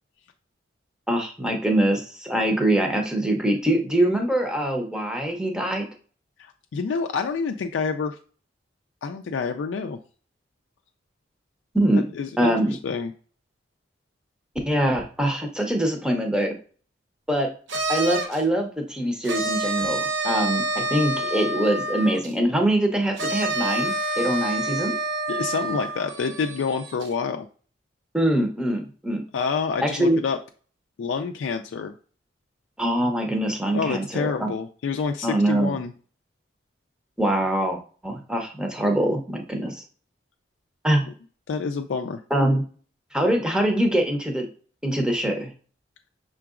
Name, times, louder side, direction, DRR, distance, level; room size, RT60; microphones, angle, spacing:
voice 1, 1.1-5.9 11.7-12.1 12.4-12.8 14.7-16.6 17.3-17.5 17.9-24.9 28.1-29.2 29.8-30.2 32.8-34.5 35.2-35.7 37.2-39.8 40.8-41.1 42.3-42.6 43.1-44.5 44.8-45.5, right 1 dB, 5° right, 2 dB, 0.7 m, -23 dB
voice 2, 6.4-8.2 9.0-10.0 11.9-12.5 12.8-13.1 25.3-27.5 29.3-30.4 31.0-31.9 33.7-35.9 41.5-42.2, left 5 dB, 85° left, 5 dB, 0.4 m, -28 dB
sound 1, 17.7-18.4 19.2-22.3 23.2-27.1, right 2 dB, 80° right, 0.9 m, -28 dB
5.8 x 3.8 x 2.4 m, 0.41 s
head